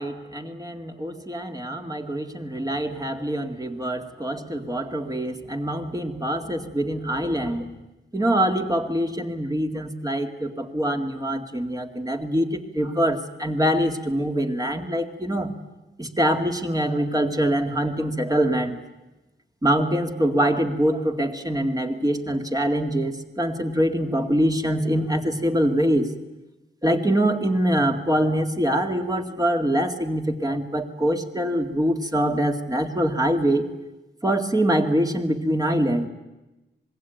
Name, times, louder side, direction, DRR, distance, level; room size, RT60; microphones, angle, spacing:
voice 1, 0.0-7.8 8.1-15.5 16.0-18.8 19.6-26.1 26.8-33.7 34.2-36.1, equal, 15° right, 5 dB, 2.1 m, -24 dB
26.0 x 21.5 x 9.3 m, 1.0 s
wide cardioid pair, 135°, 21 cm